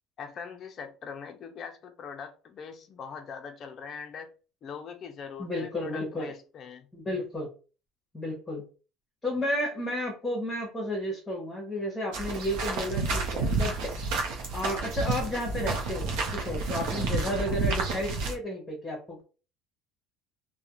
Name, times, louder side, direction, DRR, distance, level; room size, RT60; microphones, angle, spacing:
voice 1, 0.2-4.3 4.6-6.9 16.9-17.1, left 6 dB, 35° left, 0.4 m, -42 dB
voice 2, 5.4-6.3 6.9-7.5 8.1-8.6 9.2-13.7 14.5-19.2, left 1 dB, 10° left, 0.9 m, -32 dB
sound 1, 12.1-18.3, right 3 dB, 75° right, 0.6 m, -30 dB
2.4 x 2.1 x 2.8 m
cardioid pair, 145°, 0 cm